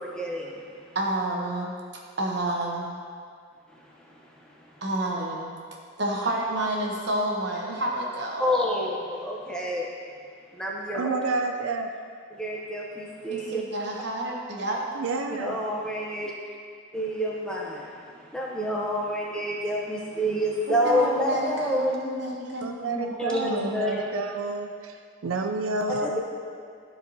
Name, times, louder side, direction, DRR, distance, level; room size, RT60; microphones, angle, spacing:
voice 1, 0.0-1.0 3.7-4.8 8.4-9.9 10.5-11.1 12.3-13.6 15.4-16.3 16.9-22.0 23.2-24.1 25.9-26.2, equal, 5° left, -3 dB, 0.7 m, -29 dB
voice 2, 0.9-1.7 2.2-3.0 4.8-5.5 6.0-8.6 13.3-14.8 20.8-23.8, right 1 dB, 55° right, -1 dB, 1.0 m, -29 dB
voice 3, 10.9-11.9 14.9-15.6 22.6-26.2, right 3 dB, 85° right, 4 dB, 0.5 m, -29 dB
13.0 x 4.7 x 2.7 m, 2.2 s
head